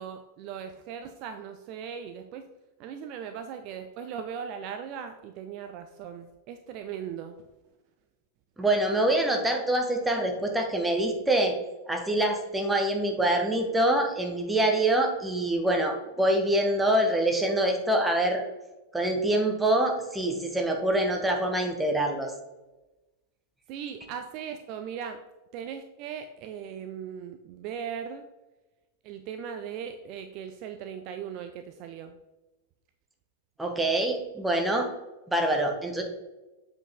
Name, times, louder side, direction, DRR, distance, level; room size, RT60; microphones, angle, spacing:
voice 1, 0.0-2.5 2.8-7.4 23.7-25.2 25.5-28.3 29.0-32.2, right 8 dB, 40° right, 8 dB, 0.5 m, -38 dB
voice 2, 8.6-11.5 11.9-18.4 18.9-22.3 33.6-34.9 35.3-36.0, right 1 dB, 5° right, 2 dB, 1.3 m, -25 dB
7.8 x 4.9 x 3.6 m, 1.1 s
figure-of-eight pair, 90°, 0 cm